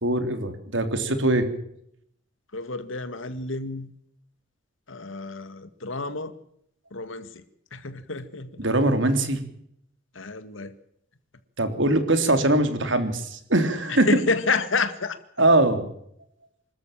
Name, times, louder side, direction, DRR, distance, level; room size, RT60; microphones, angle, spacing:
voice 1, 0.0-1.5 8.6-9.4 11.6-14.1 15.4-15.9, right 1 dB, 75° right, 8 dB, 3.5 m, -22 dB
voice 2, 2.5-3.9 4.9-6.3 6.9-7.4 7.7-8.5 10.1-10.7 13.9-15.2, left 3 dB, 85° left, 11 dB, 2.0 m, -29 dB
26.0 x 13.5 x 7.5 m, 0.71 s
head